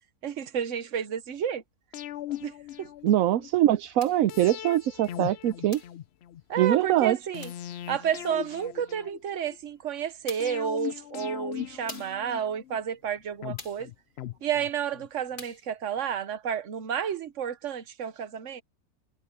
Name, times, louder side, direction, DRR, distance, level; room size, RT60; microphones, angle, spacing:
voice 1, 0.2-1.6 2.4-2.5 2.8-2.9 6.5-7.5 7.9-13.9 14.4-18.6, right 8 dB, 55° right, 1.3 m, -31 dB
sound 1, 1.9-3.5 4.3-6.4 7.3-9.6 10.4-12.8 13.4-15.1 15.4-15.5, left 12 dB, 65° left, 0.6 m, -39 dB
voice 2, 3.0-5.8 6.6-7.2, right 13 dB, 70° right, 0.9 m, -23 dB
sound 2, 4.0-4.3 5.7-6.0 7.4-7.7 9.5-9.6 10.3-10.7 11.9-12.3 13.6-13.9 15.4-15.7, left 3 dB, 90° left, 4.4 m, -45 dB
omnidirectional pair, 1.6 m